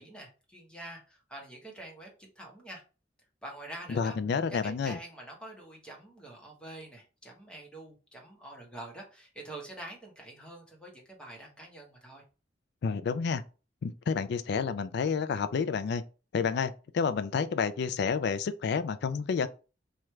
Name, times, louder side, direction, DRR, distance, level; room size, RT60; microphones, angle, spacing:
voice 1, 0.0-2.8 3.4-4.2 4.5-12.2, right 1 dB, 5° left, 1.0 m, -46 dB
voice 2, 3.9-5.0 12.8-13.4 13.8-16.0 16.3-19.5, left 5 dB, 60° left, 0.3 m, -30 dB
3.1 x 2.4 x 4.3 m
head